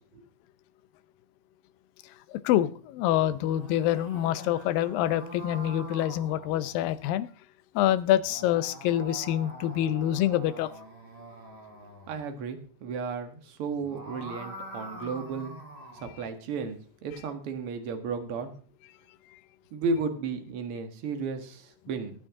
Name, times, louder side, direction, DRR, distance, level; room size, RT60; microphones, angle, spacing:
voice 1, 2.4-7.3 7.8-10.7, left 12 dB, 80° left, 14 dB, 2.4 m, -26 dB
sound 1, 3.2-7.0 8.0-12.2 13.7-16.2, right 1 dB, 10° right, 4.4 m, -44 dB
voice 2, 12.1-15.5 15.9-18.5 19.7-22.2, right 4 dB, 50° right, 7 dB, 1.9 m, -34 dB
19.0 x 8.9 x 3.7 m, 0.40 s
omnidirectional pair, 4.1 m